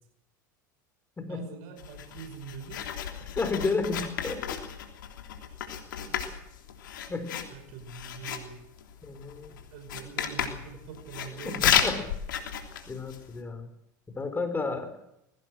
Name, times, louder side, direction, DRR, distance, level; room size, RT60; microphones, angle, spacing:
voice 1, 1.3-2.9 6.0-6.2 7.5-8.6 9.5-12.0, right 6 dB, 65° right, 8 dB, 5.7 m, -44 dB
Writing, 1.8-13.4, left 9 dB, 85° left, 3.2 m, -33 dB
voice 2, 3.3-4.6 7.1-7.3 9.0-9.5 11.4-12.0 12.9-13.7 14.1-15.0, left 3 dB, 20° left, 8 dB, 4.8 m, -32 dB
21.0 x 17.0 x 7.9 m, 0.80 s
hypercardioid pair, 90°, 10 cm